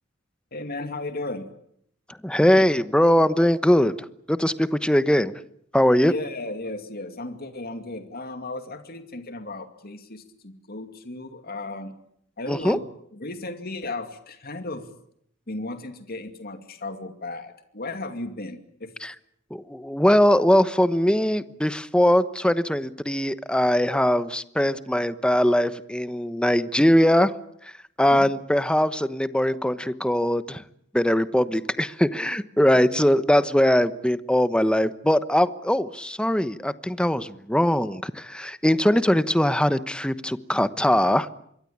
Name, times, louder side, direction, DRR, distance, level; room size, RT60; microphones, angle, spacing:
voice 1, 0.5-1.5 6.0-11.9 12.4-12.8 13.1-14.9 15.5-18.9 28.1-28.3, left 2 dB, 50° left, 7 dB, 2.5 m, -35 dB
voice 2, 2.2-3.9 4.3-5.3 5.7-6.1 12.5-12.8 19.0-19.1 19.5-27.3 28.0-30.6 30.9-41.3, equal, 5° left, 13 dB, 1.1 m, -21 dB
26.0 x 23.0 x 8.7 m, 0.70 s
head